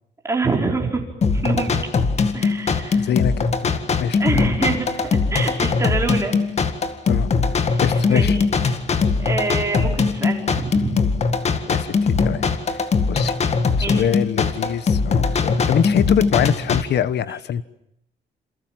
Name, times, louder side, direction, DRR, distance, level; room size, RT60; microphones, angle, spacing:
voice 1, 0.2-1.0 1.3-1.8 2.3-3.1 4.2-6.4 7.6-8.4 9.2-11.1 13.8-14.1, right 3 dB, 15° right, 1 dB, 4.8 m, -26 dB
sound 1, 1.2-16.8, left 4 dB, 35° left, 1.9 m, -21 dB
voice 2, 2.9-3.7 4.0-4.2 7.1-7.3 7.8-8.4 11.7-11.9 12.2-12.4 12.7-12.8 13.1-13.3 13.9-17.6, left 9 dB, 65° left, 16 dB, 1.2 m, -23 dB
28.5 x 28.0 x 7.6 m, 0.80 s
cardioid pair, 170°, 19 cm